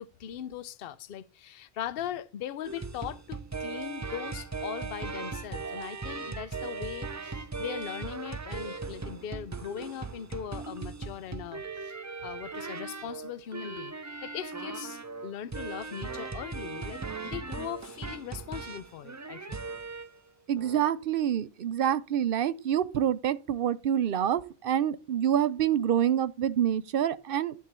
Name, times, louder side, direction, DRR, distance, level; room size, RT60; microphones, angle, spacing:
voice 1, 0.0-19.6, left 10 dB, 65° left, 0.8 m, -40 dB
sound 1, 2.6-20.2 20.6-20.8, right 4 dB, 30° right, 0.3 m, -38 dB
voice 2, 20.5-27.5, right 10 dB, 65° right, 0.7 m, -27 dB
10.5 x 3.7 x 6.8 m
omnidirectional pair, 1.0 m